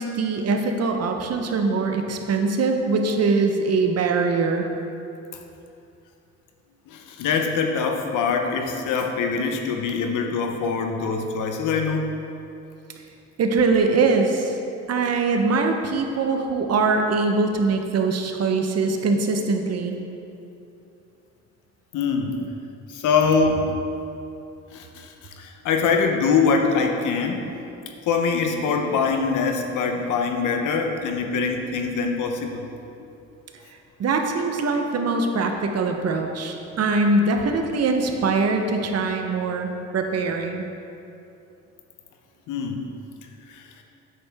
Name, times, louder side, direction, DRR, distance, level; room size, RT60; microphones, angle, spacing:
voice 1, 0.0-4.7 13.4-14.6 14.9-20.0 34.0-40.7, right 3 dB, 55° right, 4 dB, 0.9 m, -22 dB
voice 2, 6.9-12.1 21.9-22.4 22.9-23.7 24.7-27.5 28.1-32.7 42.5-42.9 43.5-43.7, left 5 dB, 85° left, 3 dB, 0.9 m, -23 dB
8.5 x 6.6 x 3.5 m, 2.7 s
cardioid pair, 90°, 30 cm